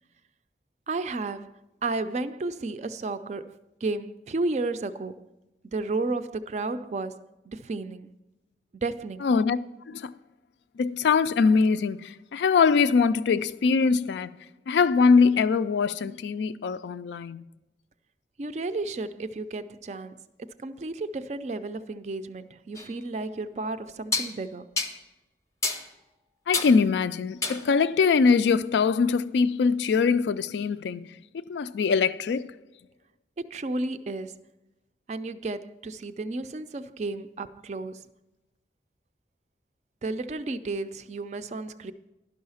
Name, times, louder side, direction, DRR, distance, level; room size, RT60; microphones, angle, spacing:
voice 1, 0.9-1.5 1.8-5.3 5.7-8.1 8.8-9.3 18.4-20.2 20.6-24.7 33.4-34.4 35.1-38.1 40.0-41.9, right 3 dB, 40° right, 0.3 m, -32 dB
voice 2, 9.2-9.6 9.9-10.1 10.8-14.3 14.7-17.5 26.5-31.1 31.3-32.5, left 5 dB, 75° left, 0.3 m, -22 dB
sound 1, 22.8-22.9 24.1-24.3 24.8-25.0 25.6-25.9 26.5-26.8 27.4-27.7, left 3 dB, 15° left, 0.6 m, -28 dB
11.5 x 5.6 x 5.6 m
head